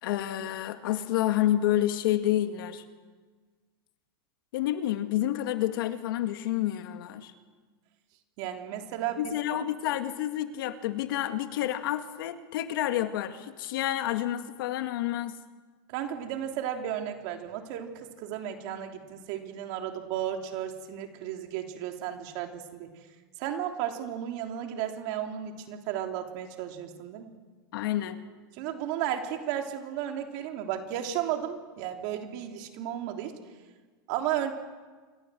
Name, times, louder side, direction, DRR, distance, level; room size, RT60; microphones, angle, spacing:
voice 1, 0.0-2.8 4.5-7.3 9.2-15.3 27.7-28.2, left 13 dB, 65° left, 8 dB, 2.2 m, -29 dB
voice 2, 8.4-9.3 15.9-22.9 23.4-27.3 28.5-33.3 34.1-34.5, right 10 dB, 45° right, 4 dB, 3.3 m, -34 dB
27.5 x 23.5 x 7.8 m, 1.4 s
supercardioid pair, 160°, 13 cm